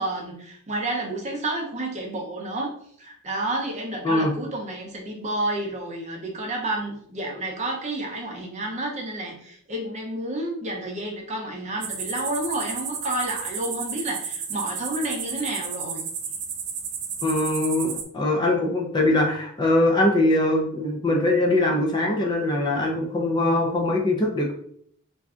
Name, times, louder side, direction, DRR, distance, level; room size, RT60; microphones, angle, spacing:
voice 1, 0.0-16.1, right 1 dB, 30° right, 0 dB, 0.6 m, -30 dB
sound 1, 11.8-18.0, right 6 dB, 80° right, 0.5 m, -32 dB
voice 2, 17.2-24.5, left 1 dB, 20° left, 0 dB, 0.4 m, -22 dB
2.5 x 2.2 x 3.5 m, 0.64 s
head